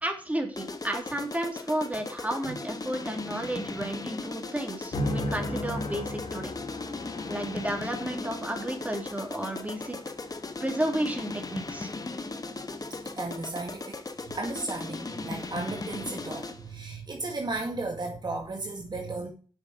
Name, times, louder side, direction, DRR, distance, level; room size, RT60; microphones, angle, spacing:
voice 1, 0.0-6.5 7.3-10.0 10.6-11.9, right 1 dB, 15° right, 3.1 m, -32 dB
sound 1, 0.6-16.7, left 3 dB, 35° left, 1.3 m, -38 dB
sound 2, 4.9-13.3, left 1 dB, 75° left, 2.6 m, -38 dB
voice 2, 13.2-14.0 14.3-19.3, right 2 dB, 45° right, 2.1 m, -34 dB
8.1 x 6.1 x 6.2 m
cardioid pair, 50°, 10 cm